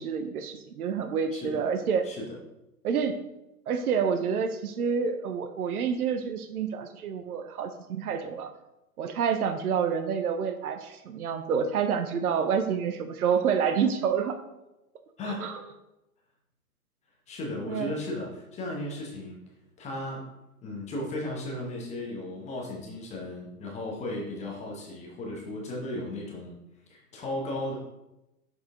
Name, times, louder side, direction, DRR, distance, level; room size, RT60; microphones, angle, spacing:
voice 1, 0.0-2.1 2.8-3.2 3.7-8.5 9.0-14.4 15.4-15.6 17.7-18.0, right 6 dB, 70° right, 8 dB, 0.8 m, -28 dB
voice 2, 1.3-1.6 2.0-2.4 15.2-15.5 17.3-19.4 19.8-20.3 20.6-26.6 26.9-27.7, left 1 dB, 15° left, -2 dB, 1.0 m, -35 dB
6.3 x 4.8 x 3.7 m, 0.93 s
hypercardioid pair, 125°, 46 cm